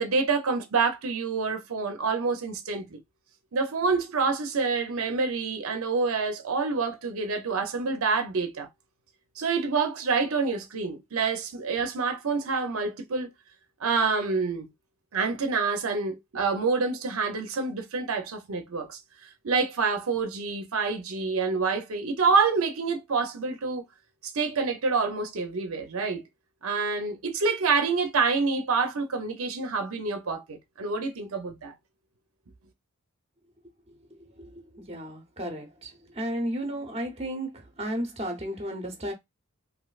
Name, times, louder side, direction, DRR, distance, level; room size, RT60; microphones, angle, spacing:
voice 1, 0.0-3.0 3.5-8.7 9.4-13.3 13.8-14.7 15.1-19.0 19.4-23.8 24.2-26.2 26.6-31.7, right 4 dB, 75° right, 0.6 m, -27 dB
voice 2, 34.4-39.1, right 1 dB, 30° right, 0.8 m, -34 dB
3.1 x 2.7 x 2.4 m
head